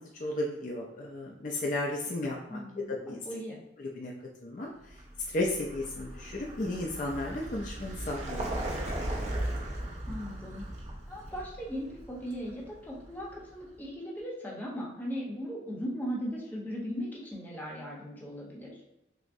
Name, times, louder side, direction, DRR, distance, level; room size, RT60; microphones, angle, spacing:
voice 1, 0.2-3.2 3.8-4.1 4.4-4.7 5.3-8.5, left 1 dB, 45° left, -1 dB, 0.4 m, -34 dB
voice 2, 2.5-3.6 10.1-10.6 11.1-18.7, equal, 10° left, -4 dB, 0.8 m, -38 dB
Vehicle, 4.9-13.7, right 1 dB, 35° right, 0.6 m, -38 dB
5.9 x 2.1 x 2.6 m, 0.93 s
head